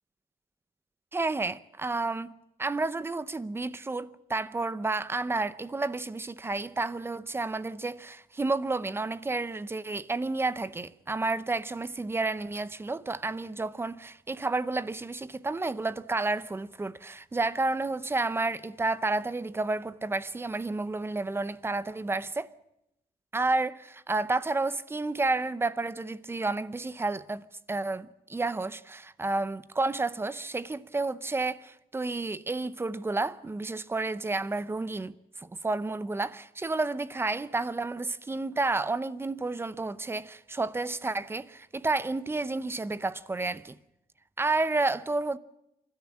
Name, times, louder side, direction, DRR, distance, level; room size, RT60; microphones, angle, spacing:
voice 1, 1.1-2.3 2.6-22.5 23.3-27.4 27.7-43.8 44.4-45.4, right 3 dB, 15° right, 0.7 m, -31 dB
27.0 x 13.0 x 8.6 m
cardioid pair, 145°, 15 cm